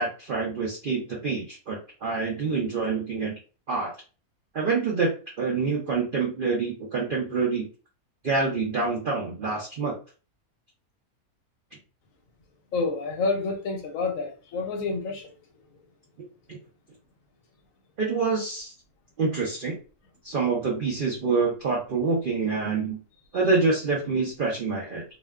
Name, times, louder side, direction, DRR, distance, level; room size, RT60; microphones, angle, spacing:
voice 1, 0.0-3.3 3.7-3.9 4.5-5.1 5.4-7.7 8.2-10.0 16.5-16.6 18.0-18.7 19.2-19.7 20.2-23.0 23.3-25.0, right 4 dB, 65° right, 0.5 m, -26 dB
voice 2, 12.7-15.4, left 3 dB, 70° left, 1.0 m, -28 dB
2.5 x 2.2 x 2.2 m
omnidirectional pair, 1.5 m